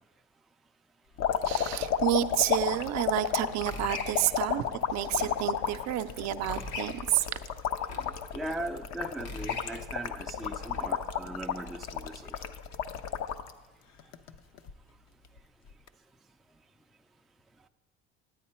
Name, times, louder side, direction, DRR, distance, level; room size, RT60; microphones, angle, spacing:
sound 1, 1.2-13.5 14.0-14.7 15.7-15.9, left 8 dB, 65° left, 0.6 m, -32 dB
voice 1, 1.4-7.3, right 13 dB, 65° right, 11 dB, 0.5 m, -30 dB
sound 2, 2.9-10.9, left 3 dB, 80° left, 1.7 m, -44 dB
voice 2, 8.3-12.2, right 1 dB, ahead, 5 dB, 0.3 m, -38 dB
9.5 x 9.3 x 4.3 m, 1.2 s
supercardioid pair, 95°, 29 cm